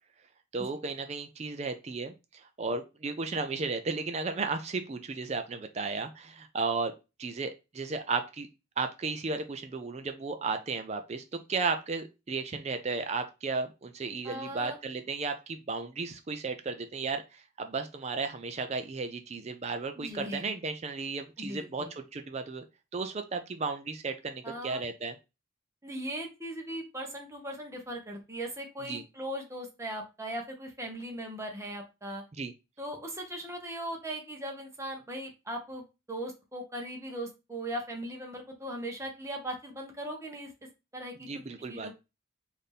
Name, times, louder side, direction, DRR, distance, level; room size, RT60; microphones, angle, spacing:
voice 1, 0.5-6.9 7.2-8.5 8.8-22.6 22.9-25.2 28.9-29.0 32.4-32.5 41.2-41.9, right 4 dB, 30° right, 8 dB, 0.4 m, -34 dB
voice 2, 14.2-14.8 20.0-20.4 21.4-21.9 24.4-24.8 25.8-32.2 32.8-40.5 40.9-41.3 41.7-41.9, right 1 dB, 15° right, 2 dB, 0.8 m, -39 dB
4.1 x 2.6 x 3.3 m, 0.27 s
head